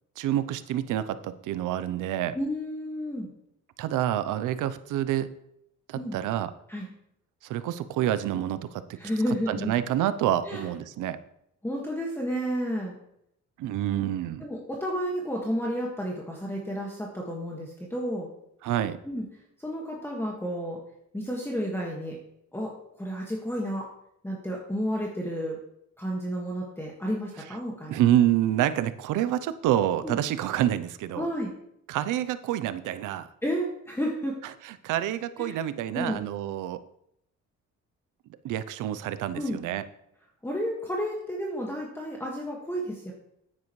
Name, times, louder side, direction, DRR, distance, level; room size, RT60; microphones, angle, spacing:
voice 1, 0.2-2.4 3.8-5.3 5.9-6.5 7.4-9.0 9.5-11.2 13.6-14.4 18.6-19.0 27.9-31.3 31.9-33.3 34.6-36.8 38.4-39.8, right 12 dB, 85° right, 14 dB, 0.7 m, -27 dB
voice 2, 2.3-3.3 5.9-6.2 6.7-6.9 9.0-9.7 10.5-10.6 11.6-13.0 14.4-18.3 19.0-19.2 19.6-20.8 21.1-22.2 22.5-23.9 24.2-25.6 26.0-28.0 30.0-30.2 31.2-31.5 33.4-34.3 35.4-35.6 35.9-36.3 39.3-39.6 40.4-43.1, equal, 10° left, -2 dB, 1.7 m, -31 dB
9.7 x 9.6 x 3.2 m, 0.76 s
cardioid pair, 90°, 30 cm